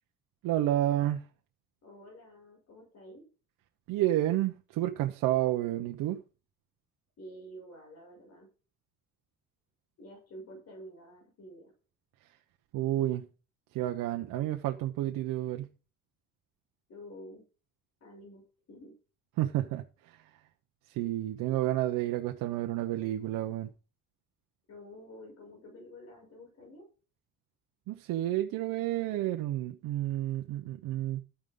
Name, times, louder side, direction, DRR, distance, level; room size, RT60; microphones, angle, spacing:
voice 1, 0.4-1.2 3.9-6.2 12.7-13.3 13.7-15.7 19.4-20.2 20.9-23.7 27.9-31.2, right 14 dB, 85° right, 1.0 m, -30 dB
voice 2, 1.8-3.2 7.2-8.5 10.0-11.7 16.9-17.4 18.0-18.9 24.7-26.9, equal, 50° left, 6.8 m, -49 dB
12.5 x 9.0 x 3.9 m
cardioid pair, 125°, 32 cm